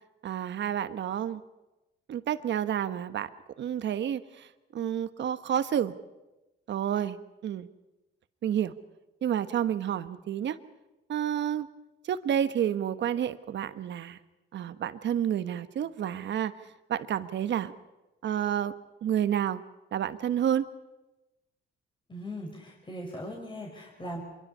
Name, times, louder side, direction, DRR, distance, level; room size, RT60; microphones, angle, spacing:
voice 1, 0.2-1.4 2.1-3.3 3.6-4.5 4.7-5.9 6.7-7.2 7.4-7.7 8.4-8.7 9.2-10.6 11.1-11.7 12.1-14.2 14.5-16.5 16.9-17.7 18.2-18.7 19.0-19.6 19.9-20.7, right 9 dB, 65° right, 12 dB, 1.2 m, -29 dB
voice 2, 22.1-24.2, equal, 25° left, 0 dB, 5.0 m, -39 dB
25.5 x 22.5 x 5.6 m, 1.0 s
cardioid pair, 90°, 20 cm